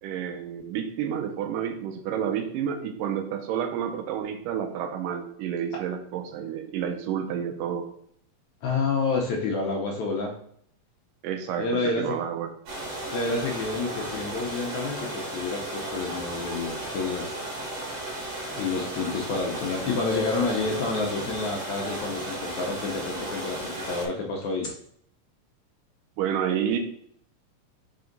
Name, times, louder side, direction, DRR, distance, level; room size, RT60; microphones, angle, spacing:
voice 1, 0.0-7.9 11.2-12.5 26.2-26.8, right 8 dB, 80° right, 6 dB, 2.1 m, -30 dB
voice 2, 8.6-10.3 11.6-12.2 13.1-17.4 18.5-24.7, left 3 dB, 75° left, 0 dB, 1.8 m, -29 dB
sound 1, 12.7-24.1, right 1 dB, 65° right, 3.1 m, -35 dB
sound 2, 20.0-21.8 24.4-24.7, left 5 dB, 50° left, 1.2 m, -36 dB
5.1 x 4.8 x 3.9 m, 0.66 s
omnidirectional pair, 4.0 m